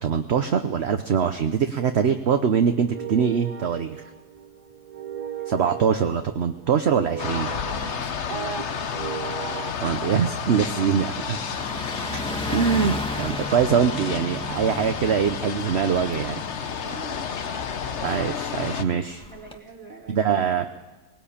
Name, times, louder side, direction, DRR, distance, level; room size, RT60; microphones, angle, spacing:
voice 1, 0.0-4.0 5.5-7.5 9.8-11.4 12.1-12.2 12.5-16.4 18.0-19.2 20.1-20.7, right 7 dB, 50° right, 7 dB, 0.9 m, -23 dB
sound 1, 1.7-9.7, right 8 dB, 80° right, 1.6 m, -37 dB
sound 2, 7.2-18.8, left 7 dB, 50° left, 1.1 m, -31 dB
voice 2, 7.7-8.1 16.8-17.3 19.3-20.7, right 4 dB, 10° right, 0 dB, 2.3 m, -44 dB
Car passing by, 10.2-19.6, left 1 dB, 5° left, 1.2 m, -36 dB
19.0 x 19.0 x 8.7 m, 1.2 s
omnidirectional pair, 1.7 m